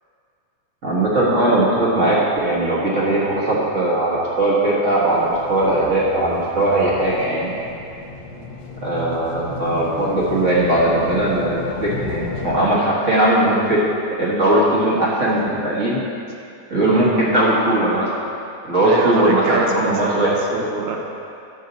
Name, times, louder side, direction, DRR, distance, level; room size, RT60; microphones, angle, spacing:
voice 1, 0.8-7.5 8.8-13.8 14.2-16.0 16.7-18.1 18.7-20.3, right 1 dB, 40° right, -6 dB, 1.1 m, -19 dB
sound 1, 5.1-12.7, left 4 dB, 65° left, 1.7 m, -32 dB
voice 2, 16.9-17.2 18.8-21.0, right 4 dB, 85° right, 1 dB, 2.4 m, -24 dB
11.0 x 7.2 x 4.0 m, 2.6 s
omnidirectional pair, 3.3 m